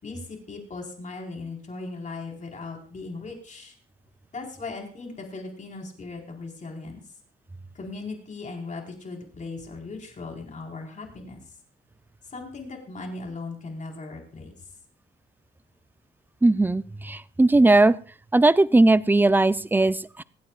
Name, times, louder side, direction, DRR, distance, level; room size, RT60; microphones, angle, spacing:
voice 1, 0.0-3.7 4.3-7.0 7.7-11.4 12.3-14.5, left 3 dB, 40° left, 1 dB, 4.3 m, -38 dB
voice 2, 16.4-18.0 18.3-20.2, right 2 dB, 10° right, 17 dB, 0.5 m, -19 dB
25.5 x 9.4 x 2.4 m, 0.42 s
cardioid pair, 90°, 20 cm